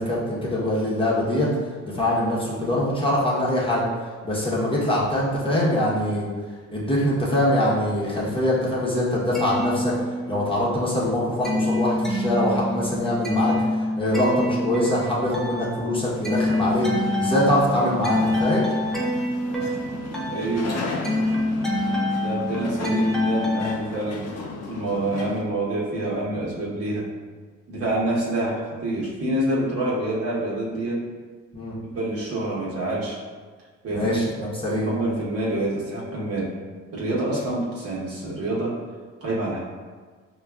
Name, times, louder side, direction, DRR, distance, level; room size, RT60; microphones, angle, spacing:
voice 1, 0.0-1.5 1.8-3.8 4.2-6.3 6.7-9.9 10.3-13.5 14.0-16.9 17.2-18.7 31.5-31.7 33.9-34.9, left 1 dB, 15° left, -7 dB, 0.9 m, -23 dB
sound 1, 9.3-10.6 10.9-23.7, left 1 dB, ahead, 0.5 m, -26 dB
sound 2, 16.5-25.4, left 3 dB, 55° left, 0.5 m, -36 dB
voice 2, 20.3-20.8 22.2-24.3 24.7-27.1 27.7-31.0 31.8-33.2 33.8-34.2 34.7-36.5 36.9-38.8 39.2-39.6, right 1 dB, 50° right, -6 dB, 1.1 m, -27 dB
4.8 x 2.3 x 2.3 m, 1.5 s
cardioid pair, 90°, 30 cm